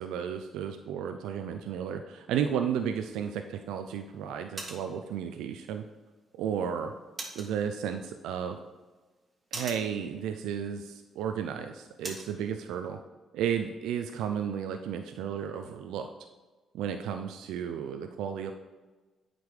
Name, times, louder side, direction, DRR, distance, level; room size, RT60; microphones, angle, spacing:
voice 1, 0.0-5.8 6.4-6.9 7.4-8.6 9.5-13.0 13.3-16.1 16.7-18.5, right 8 dB, 90° right, 7 dB, 0.4 m, -33 dB
sound 1, 2.9-12.4, right 2 dB, 30° right, 1.7 m, -47 dB
8.1 x 5.1 x 4.9 m, 1.3 s
cardioid pair, 90°, 0 cm